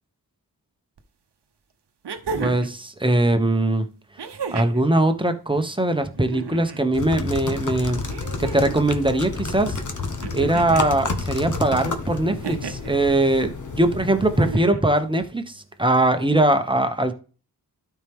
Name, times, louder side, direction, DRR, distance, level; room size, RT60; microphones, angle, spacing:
sound 1, 1.0-1.1 2.0-2.8 4.2-4.8 6.1-6.8 8.1-8.9 10.2-10.9 12.4-12.9 14.3-14.9 16.2-16.3, right 5 dB, 80° right, 1.0 m, -33 dB
voice 1, 2.4-3.9 4.5-8.0 8.4-9.8 10.3-17.1, right 1 dB, 10° right, 1.0 m, -21 dB
sound 2, 6.9-14.5, left 3 dB, 45° left, 1.2 m, -30 dB
12.5 x 4.5 x 3.6 m
wide cardioid pair, 75°, 40 cm